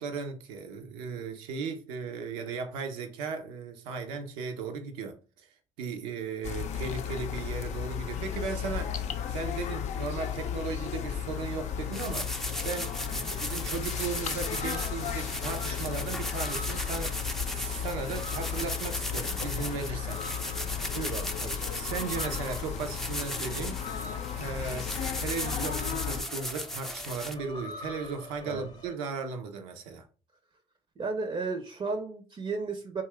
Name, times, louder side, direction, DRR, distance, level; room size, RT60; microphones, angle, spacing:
voice 1, 0.0-5.5 5.8-9.0 9.3-12.3 12.6-20.2 21.7-23.9 24.4-30.1, right 5 dB, 85° right, 0.6 m, -36 dB
sound 1, 6.4-26.2, left 8 dB, 60° left, 0.4 m, -35 dB
sound 2, 11.9-27.3, left 1 dB, 5° left, 0.4 m, -37 dB
sound 3, 13.6-28.9, left 2 dB, 30° left, 0.8 m, -46 dB
voice 2, 20.8-21.6 28.4-28.7 31.0-33.0, right 4 dB, 40° right, 0.6 m, -34 dB
2.8 x 2.3 x 3.3 m
hypercardioid pair, 55°, 14 cm